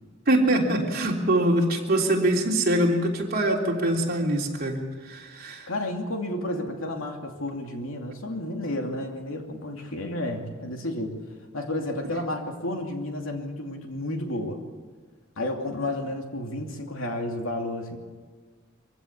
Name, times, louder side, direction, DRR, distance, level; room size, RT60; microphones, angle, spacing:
voice 1, 0.3-5.7, right 1 dB, 50° right, -1 dB, 3.5 m, -24 dB
voice 2, 5.7-11.2 11.5-14.6 15.4-18.0, left 1 dB, 85° left, 3 dB, 2.8 m, -31 dB
24.0 x 16.0 x 8.4 m, 1.5 s
head